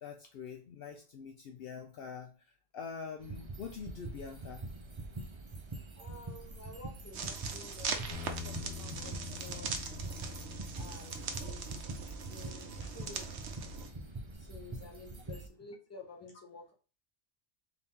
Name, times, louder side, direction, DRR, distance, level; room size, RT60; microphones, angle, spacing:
voice 1, 0.0-2.3 2.7-4.7 11.2-11.3, left 6 dB, 65° left, 4 dB, 0.7 m, -44 dB
sound 1, 3.2-15.5, right 2 dB, 35° right, 0.5 m, -45 dB
voice 2, 6.0-8.2 8.4-10.0 10.7-11.8 12.3-13.4 14.3-16.7, left 3 dB, 15° left, 0 dB, 0.9 m, -51 dB
sound 2, 7.1-13.9, right 5 dB, 75° right, 0.9 m, -41 dB
Bass guitar, 8.1-14.4, left 8 dB, 45° left, 1.4 m, -48 dB
4.0 x 2.8 x 3.6 m, 0.37 s
omnidirectional pair, 1.1 m